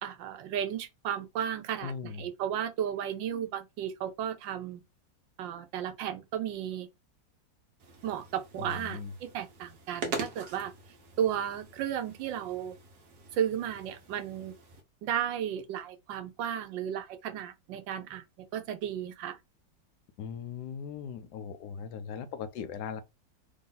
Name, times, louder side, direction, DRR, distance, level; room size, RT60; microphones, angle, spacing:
voice 1, 0.0-1.9 2.2-4.8 5.4-6.9 8.0-10.7 11.2-12.7 13.3-14.5 15.0-18.2 18.5-19.4, right 9 dB, 85° right, 1.4 m, -34 dB
voice 2, 1.8-2.3 8.6-9.1 20.2-23.0, left 7 dB, 70° left, 1.1 m, -39 dB
sound 1, 7.8-14.8, right 4 dB, 60° right, 1.5 m, -43 dB
3.8 x 2.7 x 3.8 m
omnidirectional pair, 2.0 m